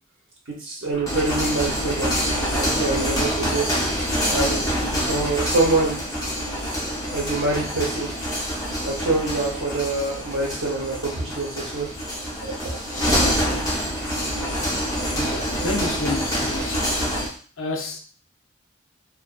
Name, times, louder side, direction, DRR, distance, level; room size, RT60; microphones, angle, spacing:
voice 1, 0.5-2.1 2.5-3.6 4.3-4.7 5.0-6.3 6.9-8.1 8.8-11.9 12.4-12.8 13.1-13.2, right 3 dB, 65° right, 0.8 m, -25 dB
sound 1, 0.9-17.4, equal, 15° left, 0.6 m, -26 dB
voice 2, 15.1-16.9 17.6-18.0, left 2 dB, 75° left, 0.5 m, -30 dB
2.5 x 2.2 x 2.4 m
head